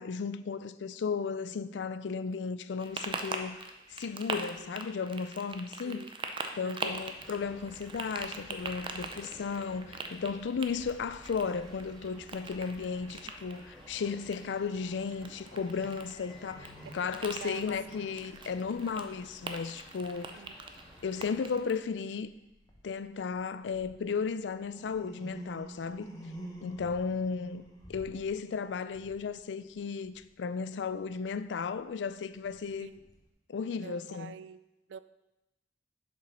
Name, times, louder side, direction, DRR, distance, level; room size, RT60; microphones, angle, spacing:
voice 1, 0.0-3.6 3.9-6.0 6.5-20.4 21.0-22.3 22.8-26.1 26.6-27.6 27.9-32.9 33.5-34.3, left 5 dB, 85° left, 0.4 m, -35 dB
sound 1, 2.8-21.9, right 3 dB, 30° right, 0.6 m, -43 dB
voice 2, 4.3-4.7 5.8-6.1 6.6-7.1 17.0-17.1 17.4-17.7 18.9-19.1 20.3-20.6 32.8-33.0 33.8-34.6 34.9-35.0, right 7 dB, 85° right, 0.3 m, -46 dB
sound 2, 6.8-21.6, equal, 5° left, 1.8 m, -54 dB
sound 3, 15.3-20.5 20.9-21.3 21.7-21.8 22.1-30.3 30.8-33.3, right 1 dB, 20° left, 1.1 m, -50 dB
7.1 x 5.2 x 5.5 m
head